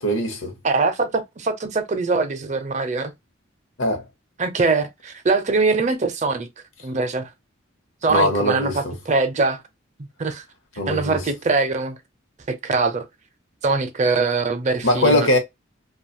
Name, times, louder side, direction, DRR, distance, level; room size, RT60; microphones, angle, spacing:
voice 1, 0.0-0.5 3.8-4.0 8.1-8.9 10.8-11.2 14.8-15.4, left 1 dB, 75° left, 0.9 m, -21 dB
voice 2, 0.6-3.1 4.4-6.5 6.8-7.3 8.0-9.6 10.0-10.4 10.9-12.0 12.5-13.1 13.6-15.3, right 3 dB, 35° right, 0.5 m, -22 dB
2.4 x 2.3 x 2.7 m
head